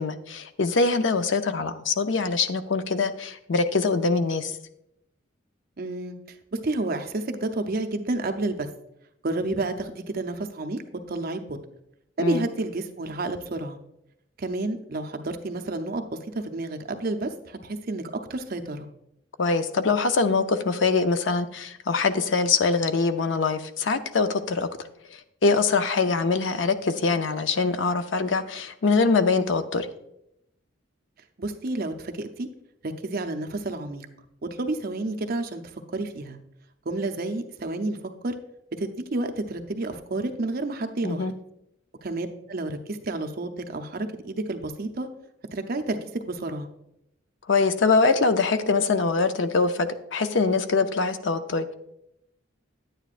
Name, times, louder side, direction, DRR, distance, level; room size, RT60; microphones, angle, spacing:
voice 1, 0.0-4.5 12.2-12.5 19.4-24.7 25.4-29.9 41.0-41.3 47.5-51.7, left 4 dB, 65° left, 10 dB, 0.6 m, -23 dB
voice 2, 5.8-6.2 6.6-8.7 9.2-10.8 11.1-11.6 12.2-13.8 14.4-16.0 16.3-18.9 31.4-32.5 32.8-34.1 34.6-35.6 35.9-36.4 36.9-38.0 38.2-38.3 38.8-41.3 42.0-45.1 45.5-46.7, right 2 dB, 50° right, 6 dB, 0.7 m, -30 dB
9.7 x 9.2 x 2.5 m, 0.81 s
head